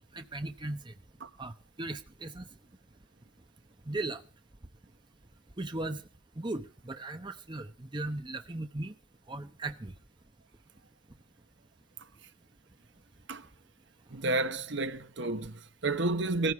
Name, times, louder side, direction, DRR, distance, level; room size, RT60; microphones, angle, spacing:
voice 1, 0.1-0.9 1.4-2.4 3.9-4.2 5.6-6.0 6.4-8.9 9.3-9.9, right 2 dB, 20° right, 0.8 m, -37 dB
voice 2, 14.1-16.5, right 2 dB, 60° right, 1.1 m, -31 dB
18.0 x 14.5 x 4.6 m
head